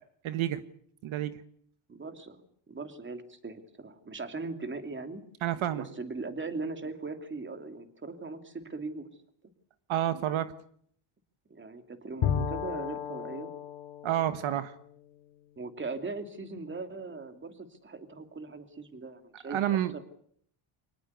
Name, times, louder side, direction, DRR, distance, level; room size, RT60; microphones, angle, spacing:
voice 1, 0.2-0.6 1.0-1.3 5.4-5.8 9.9-10.5 14.0-14.7 19.5-19.9, right 12 dB, 70° right, 1.5 m, -29 dB
voice 2, 1.9-5.2 5.7-9.1 11.5-13.5 15.6-20.0, right 3 dB, 25° right, 2.9 m, -39 dB
Bowed string instrument, 12.2-15.9, left 8 dB, 70° left, 3.1 m, -35 dB
24.5 x 19.5 x 8.3 m
cardioid pair, 135°, 50 cm